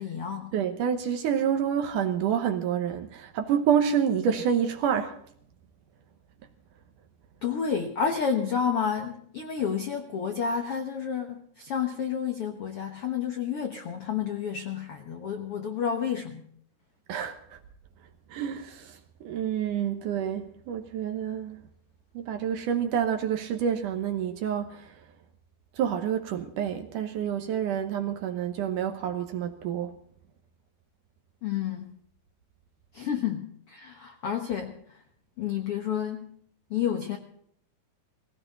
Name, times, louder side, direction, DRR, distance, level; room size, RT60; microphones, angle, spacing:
voice 1, 0.0-0.5 7.4-16.5 31.4-32.0 32.9-35.0 35.4-36.3 36.7-37.2, left 7 dB, 80° left, 1.3 m, -30 dB
voice 2, 0.5-5.1 17.1-17.6 18.3-21.6 22.1-24.9 25.8-29.9, right 8 dB, 70° right, 2.2 m, -28 dB
19.0 x 17.5 x 4.1 m
omnidirectional pair, 4.5 m